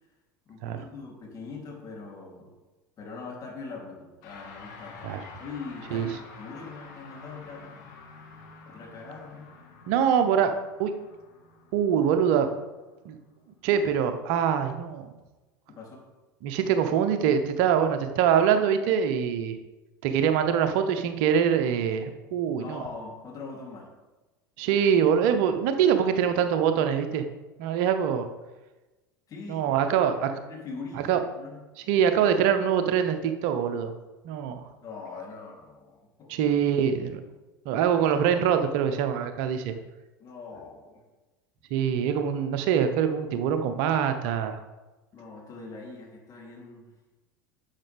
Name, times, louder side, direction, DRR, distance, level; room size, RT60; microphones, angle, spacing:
voice 1, 0.5-2.5 3.0-7.8 8.6-9.5 15.7-16.0 22.6-23.9 29.3-30.1 30.5-31.6 34.8-36.4 40.2-41.0 45.1-46.9, left 4 dB, 35° left, -2 dB, 3.4 m, -42 dB
sound 1, 4.2-13.7, left 4 dB, 60° left, 1.9 m, -48 dB
voice 2, 9.9-10.5 10.8-10.9 11.7-12.5 13.0-13.2 13.6-15.1 16.4-19.6 20.0-22.8 24.6-27.2 27.6-28.3 29.5-30.3 31.1-31.2 31.9-33.9 34.2-34.7 36.3-37.2 37.6-39.7 41.7-44.6, right 8 dB, 55° right, 8 dB, 0.9 m, -24 dB
10.5 x 7.4 x 3.6 m, 1.1 s
figure-of-eight pair, 80°, 11 cm